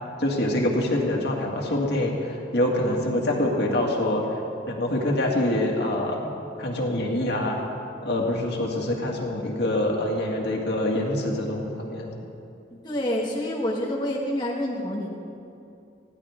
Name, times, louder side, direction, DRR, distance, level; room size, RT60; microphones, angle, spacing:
voice 1, 0.2-4.4 4.7-6.3 6.6-7.6 8.0-12.1, left 1 dB, 60° left, -1 dB, 2.2 m, -25 dB
voice 2, 12.8-15.2, left 1 dB, 25° left, -3 dB, 1.4 m, -27 dB
20.5 x 15.5 x 3.7 m, 2.6 s
head